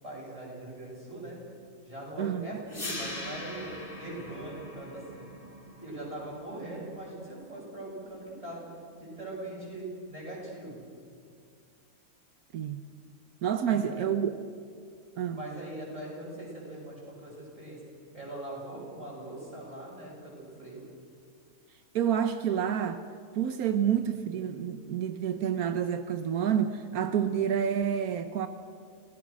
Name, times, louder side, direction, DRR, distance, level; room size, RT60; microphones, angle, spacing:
voice 1, 0.0-1.4 1.8-5.3 5.7-8.7 9.0-10.8 13.6-14.1 15.3-17.8 18.1-20.9 23.7-23.8, right 1 dB, 20° right, -5 dB, 8.1 m, -41 dB
voice 2, 2.2-2.5 12.5-12.8 13.4-14.3 15.2-15.4 21.9-23.0 23.3-28.5, right 9 dB, 85° right, 9 dB, 1.3 m, -28 dB
sound 1, 2.7-8.7, left 1 dB, 35° left, 2.5 m, -42 dB
27.0 x 18.5 x 6.2 m, 2.3 s
omnidirectional pair, 1.5 m